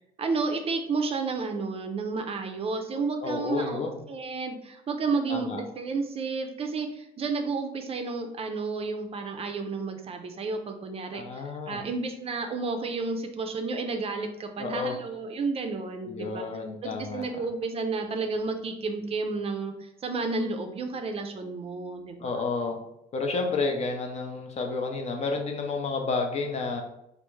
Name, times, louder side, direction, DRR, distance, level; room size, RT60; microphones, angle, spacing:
voice 1, 0.2-16.4 16.8-22.3, right 4 dB, 35° right, 5 dB, 0.4 m, -31 dB
voice 2, 3.2-4.0 5.3-5.6 11.1-11.8 14.6-14.9 16.0-17.3 22.2-22.8 23.1-26.8, left 4 dB, 40° left, 3 dB, 0.6 m, -30 dB
3.3 x 2.5 x 3.1 m, 0.84 s
cardioid pair, 110°, 17 cm